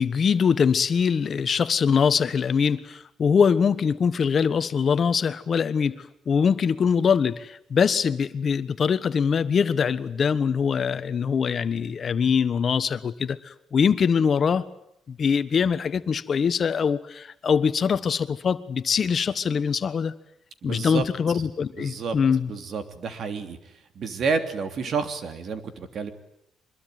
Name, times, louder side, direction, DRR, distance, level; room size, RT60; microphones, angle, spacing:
voice 1, 0.0-14.7 15.1-20.1 20.6-22.5, left 6 dB, 50° left, 13 dB, 1.3 m, -23 dB
voice 2, 20.6-21.0 21.8-22.2 22.5-26.1, right 5 dB, 60° right, 8 dB, 3.2 m, -30 dB
24.5 x 21.5 x 9.4 m, 0.76 s
cardioid pair, 90°, 0 cm